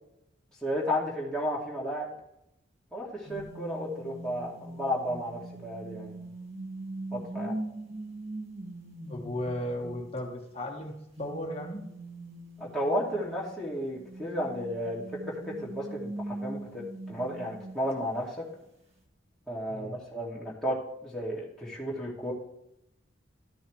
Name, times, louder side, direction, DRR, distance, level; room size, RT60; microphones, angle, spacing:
voice 1, 0.6-2.1 2.9-6.2 7.1-7.6 12.6-18.4 19.5-22.3, equal, 5° left, -6 dB, 2.5 m, -33 dB
sound 1, 3.3-10.4 11.2-18.3, right 1 dB, 35° right, 1.7 m, -41 dB
voice 2, 9.1-10.9 11.2-11.8 19.7-20.0, left 1 dB, 30° left, 1 dB, 1.6 m, -35 dB
13.5 x 6.3 x 3.3 m, 0.83 s
head